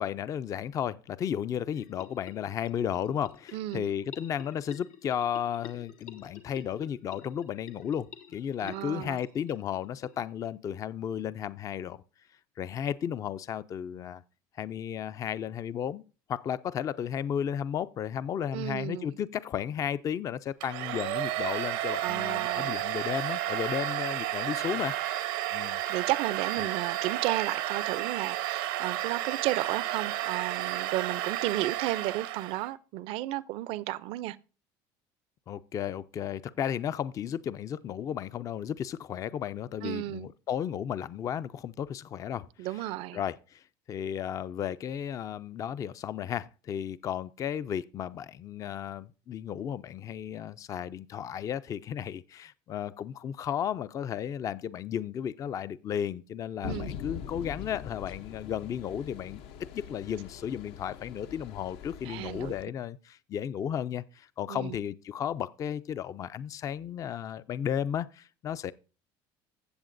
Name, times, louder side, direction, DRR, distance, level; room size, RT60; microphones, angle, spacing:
voice 1, 0.0-12.0 12.6-14.2 14.6-16.0 16.3-25.8 35.5-42.5 43.1-43.6 43.9-59.4 59.7-68.7, left 9 dB, 35° left, 0.4 m, -34 dB
sound 1, 1.7-10.5, left 9 dB, 85° left, 1.2 m, -50 dB
voice 2, 3.5-3.9 8.6-9.2 18.5-19.1 22.0-22.7 25.9-34.4 39.8-40.3 42.6-43.2 56.6-57.0 62.0-62.5 64.5-64.8, right 16 dB, 65° right, 0.4 m, -33 dB
Domestic sounds home sounds, 20.6-32.7, right 14 dB, 90° right, 0.8 m, -32 dB
sound 2, 56.6-62.6, left 8 dB, 70° left, 0.7 m, -43 dB
15.0 x 7.6 x 2.5 m
cardioid pair, 125°, 10 cm